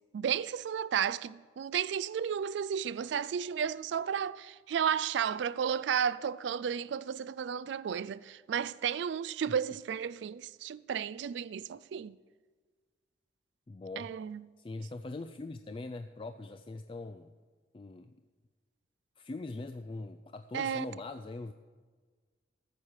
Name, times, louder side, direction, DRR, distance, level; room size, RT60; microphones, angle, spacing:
voice 1, 0.1-12.2 14.0-14.4 20.5-20.9, right 8 dB, 75° right, 0.3 m, -33 dB
voice 2, 13.7-14.1 14.6-17.3 17.7-18.2 19.2-21.5, left 2 dB, 30° left, 0.3 m, -42 dB
14.0 x 7.2 x 6.5 m
head